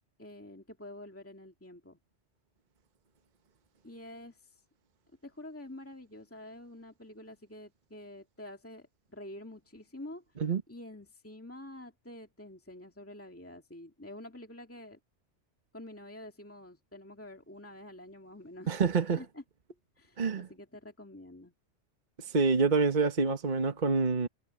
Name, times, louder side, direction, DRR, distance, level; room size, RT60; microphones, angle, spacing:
voice 1, 0.2-2.0 3.8-4.6 5.2-10.2 10.7-15.0 15.7-18.8 19.2-19.4 20.0-21.5, left 1 dB, 10° left, 2.1 m, -48 dB
voice 2, 18.7-19.2 20.2-20.5 22.3-24.3, right 4 dB, 40° right, 1.3 m, -26 dB
omnidirectional pair, 1.2 m